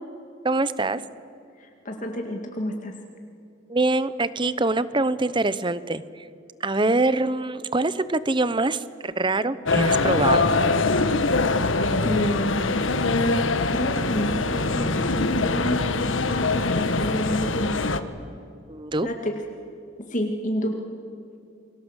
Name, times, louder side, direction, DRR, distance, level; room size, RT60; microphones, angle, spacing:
voice 1, 0.4-1.0 3.7-6.3 6.6-10.5 18.7-19.1, right 2 dB, 25° right, 15 dB, 0.8 m, -24 dB
voice 2, 1.6-2.9 12.0-12.7 13.7-15.8 16.3-17.7 19.0-19.3 20.1-20.8, equal, 40° left, 2 dB, 2.1 m, -29 dB
sound 1, 9.7-18.0, left 3 dB, 80° left, 1.4 m, -23 dB
30.0 x 23.0 x 8.1 m, 2.5 s
head